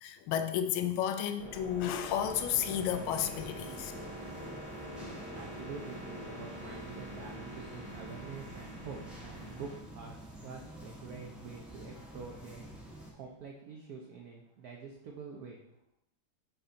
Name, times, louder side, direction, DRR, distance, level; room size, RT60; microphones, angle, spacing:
voice 1, 0.0-3.9, left 9 dB, 80° left, 9 dB, 1.4 m, -32 dB
sound 1, 1.4-9.8, equal, 35° right, 1.0 m, -45 dB
sound 2, 2.2-13.1, right 1 dB, ahead, 0.9 m, -48 dB
voice 2, 5.3-15.6, right 5 dB, 70° right, 0 dB, 0.9 m, -47 dB
6.8 x 4.2 x 3.8 m, 0.82 s
omnidirectional pair, 2.4 m